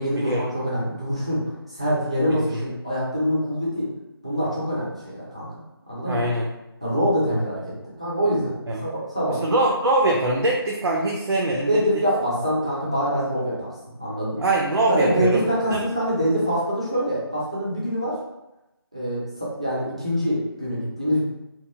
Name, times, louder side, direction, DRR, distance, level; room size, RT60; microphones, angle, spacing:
voice 1, 0.0-1.4 1.8-3.9 4.2-6.2 6.8-8.5 8.8-9.4 11.7-13.7 14.0-14.5 14.9-18.2 18.9-21.2, equal, 15° right, -8 dB, 0.3 m, -25 dB
voice 2, 2.3-2.6 6.1-6.5 8.7-8.9 9.3-11.8 14.4-15.8, right 2 dB, 75° right, -2 dB, 0.5 m, -23 dB
2.9 x 2.2 x 2.3 m, 0.94 s
figure-of-eight pair, 165°, 13 cm